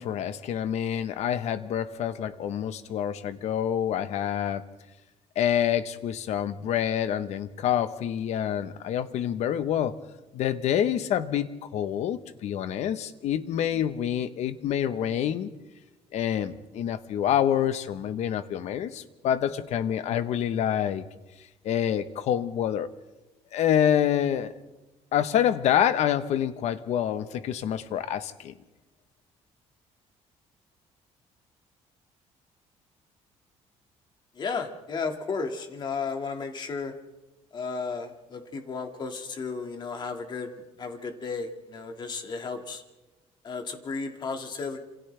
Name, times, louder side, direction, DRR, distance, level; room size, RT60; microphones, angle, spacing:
voice 1, 0.0-4.6 5.4-9.9 10.3-15.5 16.1-21.0 21.6-22.9 23.5-24.5 25.1-28.5, left 10 dB, 65° left, 11 dB, 1.2 m, -27 dB
voice 2, 34.4-36.9 37.5-42.8 43.4-44.8, left 4 dB, 35° left, 5 dB, 2.2 m, -34 dB
27.5 x 27.5 x 3.4 m, 1.1 s
cardioid pair, 155°, 12 cm